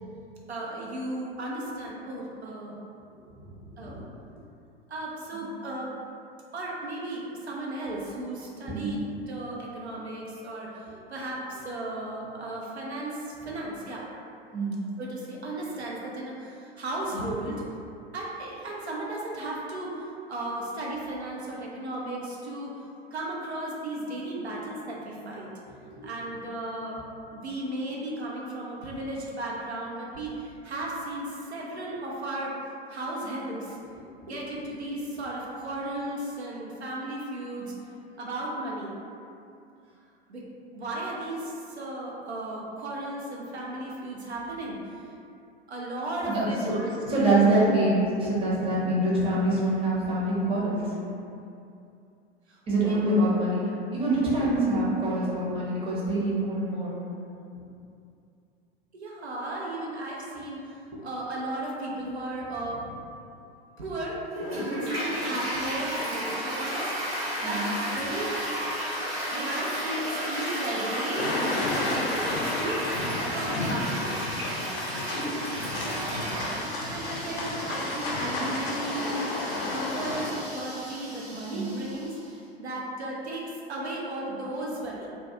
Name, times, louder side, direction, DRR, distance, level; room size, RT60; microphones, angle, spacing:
voice 1, 0.5-2.7 3.8-4.0 4.9-5.9 6.5-9.0 9.3-14.0 15.0-17.6 18.1-22.7 23.1-25.5 26.0-27.0 27.3-32.5 32.9-33.8 34.2-37.7 38.2-39.0 40.3-40.4 40.7-45.1 45.7-47.4 52.5-52.6 52.8-53.2 58.9-62.8 63.8-64.2 64.7-68.4 69.3-71.3 71.7-72.9 73.3-74.3 75.8-79.2 79.6-85.1, right 1 dB, 85° right, -3 dB, 0.5 m, -35 dB
voice 2, 46.3-46.8 47.1-50.8 52.7-53.6 53.9-56.9 67.4-67.6 81.5-81.6, right 1 dB, 15° right, -7 dB, 0.6 m, -25 dB
Toilet flush, 64.3-82.2, equal, 65° right, 1.1 m, -33 dB
sound 1, 71.2-80.3, left 2 dB, 60° left, 0.6 m, -32 dB
2.2 x 2.2 x 2.7 m, 2.6 s
figure-of-eight pair, 90°, 32 cm